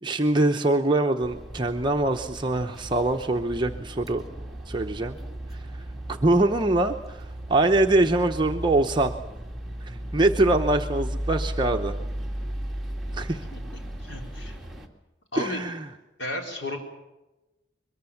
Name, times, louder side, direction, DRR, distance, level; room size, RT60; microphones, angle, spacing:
voice 1, 0.0-4.2 4.7-5.2 6.1-9.1 9.8-11.9 13.1-13.4 15.4-15.9, right 2 dB, 25° right, 3 dB, 0.8 m, -23 dB
sound 1, 1.2-14.9, right 1 dB, ahead, 2.2 m, -35 dB
voice 2, 13.1-13.6 14.0-14.6 15.3-15.6 16.2-16.8, left 1 dB, 70° left, 2 dB, 4.7 m, -34 dB
22.5 x 22.0 x 7.2 m, 1.0 s
head